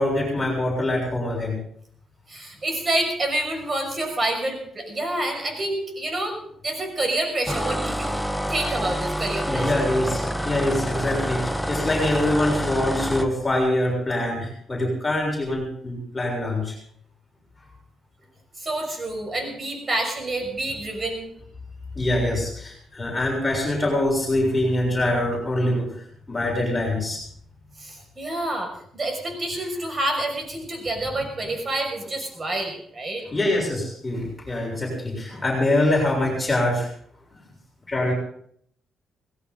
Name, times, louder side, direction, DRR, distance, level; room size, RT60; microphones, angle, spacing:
voice 1, 0.0-1.6 9.5-16.8 22.0-27.2 29.5-29.6 33.2-36.9 37.9-38.1, left 1 dB, 20° left, -2 dB, 7.1 m, -24 dB
voice 2, 2.3-6.4 6.6-8.2 8.5-9.9 18.6-21.3 27.8-33.2, right 1 dB, 30° right, 3 dB, 6.1 m, -28 dB
sound 1, 7.5-13.3, equal, ahead, 0.9 m, -27 dB
19.0 x 16.5 x 3.9 m, 0.65 s
cardioid pair, 90°, 0 cm